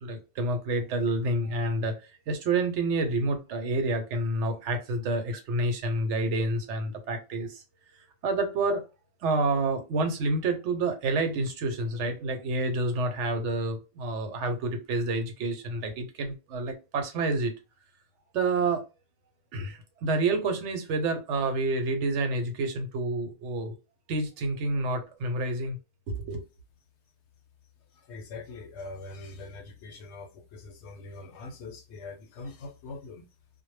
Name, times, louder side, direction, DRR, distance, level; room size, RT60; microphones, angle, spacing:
voice 1, 0.0-7.6 8.2-8.8 9.2-17.5 18.3-18.8 19.5-23.7 24.1-25.8 26.1-26.4, right 2 dB, 80° right, 1.0 m, -28 dB
voice 2, 27.9-33.3, left 3 dB, 75° left, 0.9 m, -43 dB
2.1 x 2.0 x 3.1 m
omnidirectional pair, 1.2 m